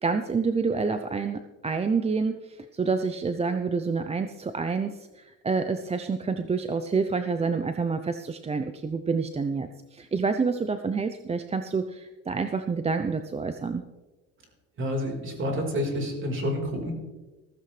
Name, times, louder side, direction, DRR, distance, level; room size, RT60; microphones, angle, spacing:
voice 1, 0.0-13.8, right 4 dB, 20° right, 9 dB, 0.6 m, -28 dB
voice 2, 14.8-16.9, equal, 40° right, 1 dB, 4.2 m, -29 dB
15.5 x 14.5 x 3.3 m, 1.2 s
cardioid pair, 110°, 32 cm